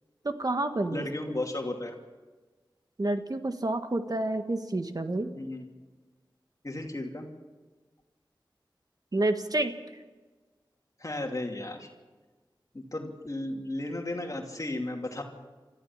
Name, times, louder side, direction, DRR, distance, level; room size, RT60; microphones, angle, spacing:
voice 1, 0.2-1.1 3.0-5.3 9.1-9.7, right 2 dB, 50° right, 7 dB, 1.6 m, -29 dB
voice 2, 0.9-2.0 5.4-5.6 6.6-7.3 11.0-11.9 12.7-15.2, left 1 dB, 40° left, 2 dB, 2.8 m, -34 dB
24.5 x 14.5 x 7.4 m, 1.3 s
wide cardioid pair, 45°, 8 cm